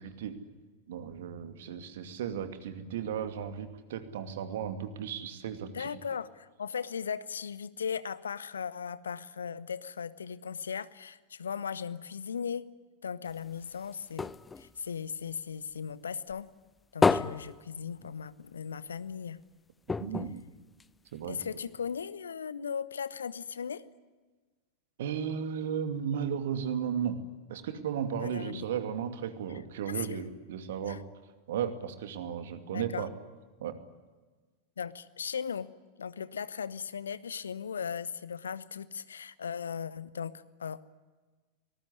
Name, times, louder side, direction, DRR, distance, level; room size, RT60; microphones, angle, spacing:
voice 1, 0.9-6.0 20.0-20.4 21.1-21.4 25.0-27.2 27.5-31.0 31.5-33.1 33.6-33.8, right 8 dB, 55° right, 9 dB, 2.5 m, -35 dB
voice 2, 5.7-12.7 13.0-14.3 14.6-16.5 16.9-19.4 21.3-23.8 28.2-28.7 29.9-30.2 30.8-31.0 32.7-33.1 34.8-35.7 36.0-40.8, left 7 dB, 70° left, 17 dB, 1.0 m, -37 dB
sound 1, 13.3-15.9 16.3-18.5 18.9-19.0 19.3-19.4 19.8-21.4 22.0-22.1, left 4 dB, 15° left, 0.8 m, -32 dB
25.5 x 19.5 x 9.7 m, 1.3 s
figure-of-eight pair, 90°, 0 cm